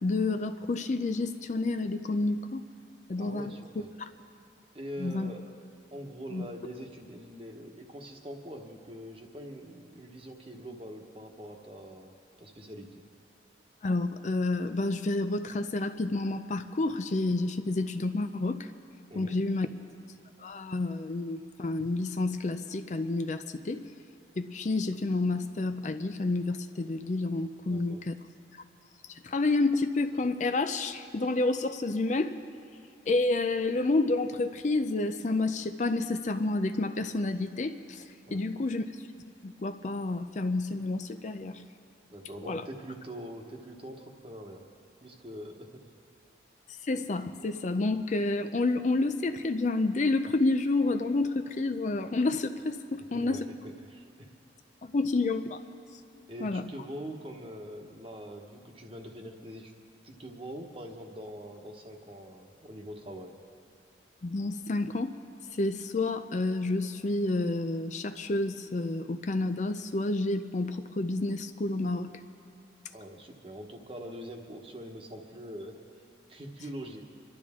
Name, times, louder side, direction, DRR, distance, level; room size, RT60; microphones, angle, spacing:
voice 1, 0.0-2.6 3.1-3.5 5.0-5.3 6.3-6.5 13.8-18.7 19.2-19.7 20.4-23.9 24.4-28.1 28.5-28.6 29.0-32.4 33.1-38.8 39.4-41.6 42.5-42.7 46.7-53.4 54.8-55.6 56.4-56.6 64.2-65.2 65.5-72.2, left 2 dB, 40° left, 9 dB, 0.4 m, -29 dB
voice 2, 3.2-3.9 4.7-5.5 5.9-12.1 12.4-13.0 19.1-19.4 27.6-28.0 38.3-38.4 42.1-44.7 45.0-45.8 53.1-53.4 53.8-54.3 56.3-59.7 60.0-63.3 72.9-75.7 76.3-77.0, equal, 30° right, 2 dB, 1.2 m, -43 dB
26.0 x 12.0 x 3.7 m, 2.6 s
head